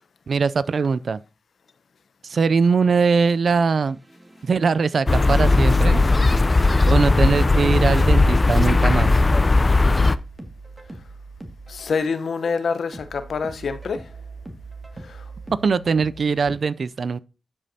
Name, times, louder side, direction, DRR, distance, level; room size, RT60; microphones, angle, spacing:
voice 1, 0.3-1.2 2.2-4.0 4.4-6.0 6.9-9.1 15.6-17.2, right 5 dB, 70° right, 0.4 m, -21 dB
sound 1, 3.9-16.6, right 3 dB, 25° right, 1.9 m, -41 dB
sound 2, 5.1-10.2, left 3 dB, 40° left, 0.5 m, -17 dB
voice 2, 11.7-14.1 15.0-15.3, left 5 dB, 75° left, 0.9 m, -26 dB
11.5 x 5.1 x 2.8 m
supercardioid pair, 40°, 0 cm